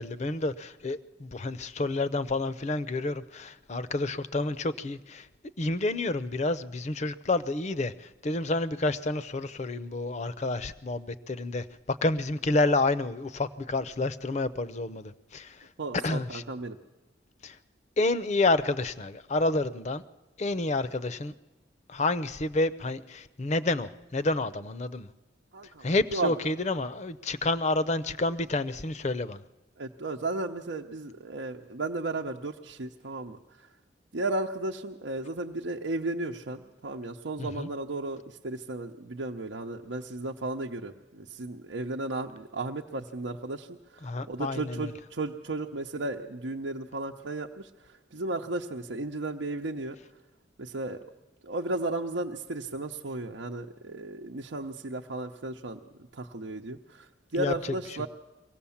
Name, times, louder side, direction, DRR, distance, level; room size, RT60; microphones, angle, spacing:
voice 1, 0.0-5.3 5.6-15.7 16.0-16.4 17.4-17.6 18.0-20.0 20.4-21.3 21.9-25.1 25.8-29.4 37.4-37.7 44.0-44.9 57.4-57.5, left 2 dB, 40° left, 14 dB, 0.6 m, -29 dB
voice 2, 15.8-16.8 25.5-25.8 26.1-26.3 29.8-33.7 34.1-50.0 50.6-51.0 51.4-55.8 56.1-58.1, right 2 dB, 85° right, 1 dB, 0.8 m, -34 dB
23.0 x 17.5 x 7.2 m, 1.1 s
head